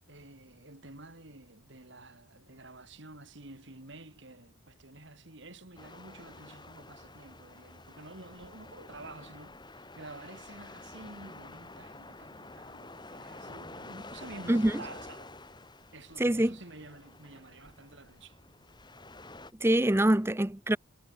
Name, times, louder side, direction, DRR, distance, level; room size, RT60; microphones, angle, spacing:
voice 1, 0.1-15.3 15.9-18.4, right 2 dB, 60° right, 3.2 m, -50 dB
sound 1, 5.8-19.5, left 2 dB, 20° left, 6.6 m, -49 dB
voice 2, 14.5-14.8 16.2-16.6 19.6-20.8, right 1 dB, 10° right, 0.6 m, -25 dB
head